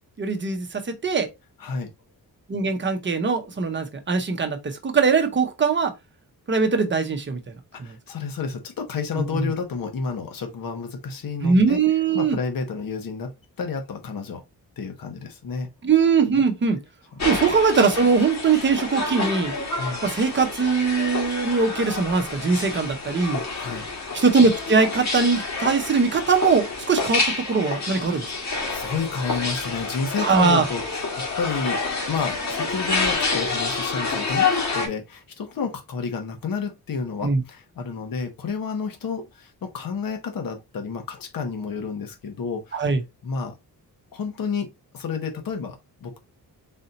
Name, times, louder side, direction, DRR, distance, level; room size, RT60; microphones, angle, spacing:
voice 1, 0.2-1.3 2.5-5.9 6.5-7.4 7.8-7.9 9.2-9.5 11.4-12.4 15.8-16.8 17.2-19.5 20.0-23.4 24.1-28.2 30.2-30.6 37.2-37.4 42.7-43.0, right 5 dB, 30° right, 0.8 m, -21 dB
voice 2, 1.6-1.9 7.7-11.8 12.1-14.4 14.8-15.7 19.8-20.0 23.3-23.8 28.7-30.8 31.4-31.8 32.1-42.9 43.2-43.5 44.1-44.7 44.9-46.2, left 5 dB, 65° left, 1.0 m, -30 dB
sound 1, 17.2-34.9, left 3 dB, 45° left, 1.4 m, -28 dB
4.1 x 2.7 x 3.9 m
wide cardioid pair, 170°, 37 cm